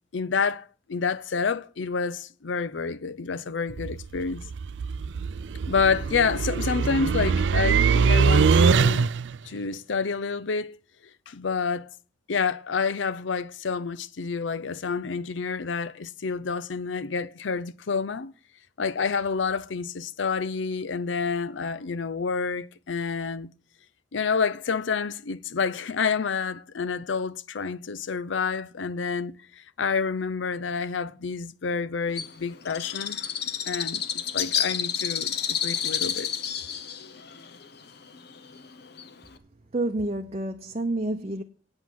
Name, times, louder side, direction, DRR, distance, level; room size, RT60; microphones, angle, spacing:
voice 1, 0.1-4.5 5.7-9.1 9.4-10.8 11.3-11.9 12.3-18.3 18.8-23.5 24.1-33.2 33.7-36.3, left 5 dB, 80° left, 0.6 m, -28 dB
sound 1, 3.7-9.4, right 5 dB, 70° right, 0.4 m, -23 dB
Bird, 32.1-39.4, left 8 dB, 60° left, 1.0 m, -30 dB
voice 2, 39.7-41.4, right 2 dB, 35° right, 0.7 m, -29 dB
8.8 x 8.2 x 7.4 m
head